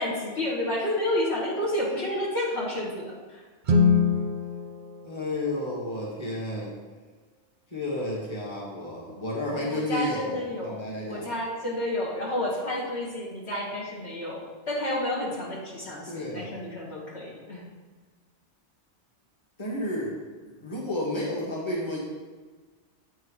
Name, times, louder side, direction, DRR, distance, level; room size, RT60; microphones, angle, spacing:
voice 1, 0.0-3.4 9.5-10.8 11.1-14.4 14.7-17.6, left 1 dB, 65° left, -5 dB, 1.9 m, -30 dB
Guitar, 3.6-6.2, left 5 dB, 50° right, 0.7 m, -25 dB
voice 2, 5.0-6.7 7.7-11.3 16.1-16.5 19.6-20.1 20.6-22.0, left 1 dB, 25° left, -5 dB, 1.7 m, -31 dB
8.9 x 4.6 x 4.9 m, 1.4 s
omnidirectional pair, 1.2 m